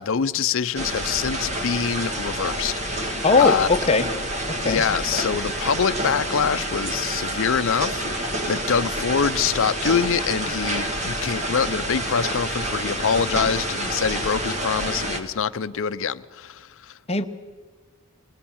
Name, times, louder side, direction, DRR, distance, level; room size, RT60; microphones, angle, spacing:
voice 1, 0.0-3.7 4.6-16.9, left 6 dB, 65° left, 0.6 m, -25 dB
sound 1, 0.8-15.2, right 1 dB, 35° right, 1.9 m, -28 dB
voice 2, 3.2-4.1 4.6-4.8 17.1-17.2, left 4 dB, 30° left, 0.9 m, -19 dB
21.0 x 19.5 x 7.2 m
head